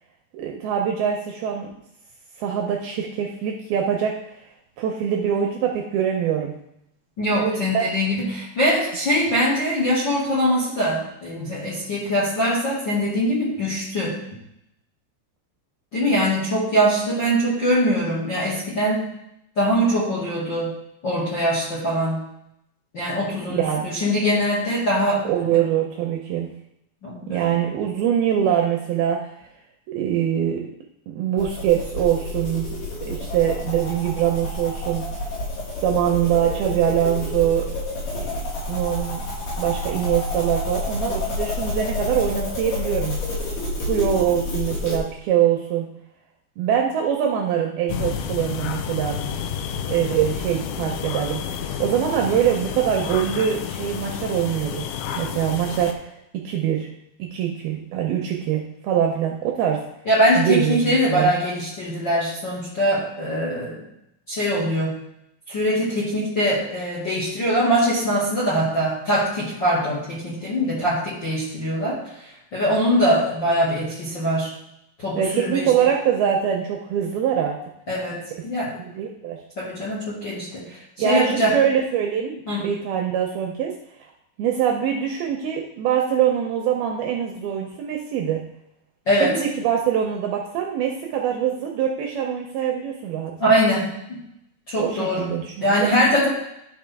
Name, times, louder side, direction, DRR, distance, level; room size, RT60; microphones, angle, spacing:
voice 1, 0.3-1.7 2.4-4.2 4.8-6.6 7.4-7.9 23.5-23.9 25.3-26.5 27.3-29.3 29.9-30.7 31.1-32.7 33.1-35.1 35.8-37.7 38.1-38.3 38.7-39.2 39.6-43.2 43.8-45.9 46.6-49.2 49.9-51.4 51.8-54.8 55.2-56.1 56.4-56.9 57.2-59.8 60.3-61.3 75.2-77.6 78.8-79.4 81.0-84.1 84.4-88.4 89.1-93.3 94.8-95.9, right 9 dB, 80° right, 1 dB, 2.2 m, -23 dB
voice 2, 7.2-14.2 15.9-19.0 19.5-20.7 21.0-22.2 22.9-25.6 27.0-27.6 60.0-63.8 64.3-64.9 65.5-72.0 72.5-74.5 75.0-75.7 77.9-78.8 79.6-80.8 81.0-81.6 82.5-82.7 89.1-89.4 93.4-94.2 94.7-95.3 95.6-96.3, equal, 50° left, -6 dB, 1.4 m, -22 dB
sound 1, 31.4-45.0, left 2 dB, 65° left, 5.3 m, -29 dB
sound 2, 47.9-55.9, left 7 dB, 90° left, 3.0 m, -30 dB
11.5 x 5.2 x 3.4 m, 0.78 s
omnidirectional pair, 5.1 m